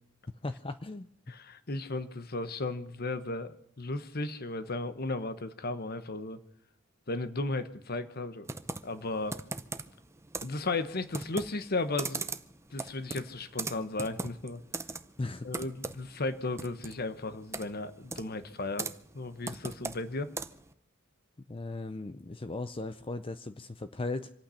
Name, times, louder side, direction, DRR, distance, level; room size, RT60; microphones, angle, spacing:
voice 1, 0.4-1.1 15.2-15.5 21.5-24.3, left 2 dB, 25° left, 10 dB, 0.6 m, -37 dB
voice 2, 1.3-6.4 7.1-8.5 8.8-9.4 10.4-12.3 12.7-14.6 15.4-20.3, left 2 dB, 50° left, 12 dB, 1.1 m, -35 dB
Computer keyboard, 8.5-20.7, right 3 dB, 15° right, 0.7 m, -40 dB
26.5 x 8.9 x 5.7 m, 0.71 s
head